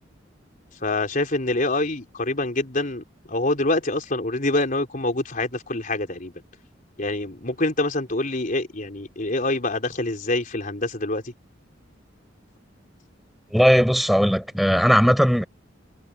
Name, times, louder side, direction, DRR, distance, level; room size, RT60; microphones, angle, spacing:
voice 1, 0.8-6.3 7.0-11.3, left 2 dB, 45° left, 4.2 m, -25 dB
voice 2, 13.5-15.4, equal, ahead, 6.9 m, -18 dB
head